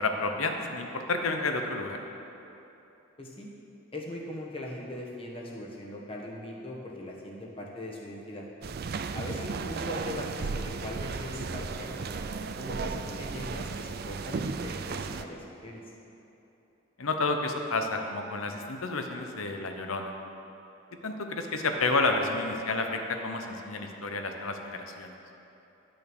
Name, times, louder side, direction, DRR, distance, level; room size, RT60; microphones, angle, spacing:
voice 1, 0.0-2.0 17.0-20.1 21.0-25.1, left 3 dB, 80° left, 4 dB, 0.9 m, -30 dB
voice 2, 3.2-3.5 3.9-8.5 9.1-12.2 12.6-15.8, left 1 dB, 25° left, -2 dB, 1.2 m, -40 dB
sound 1, 8.6-15.2, right 4 dB, 45° right, 0.4 m, -35 dB
10.5 x 6.4 x 6.2 m, 2.9 s
head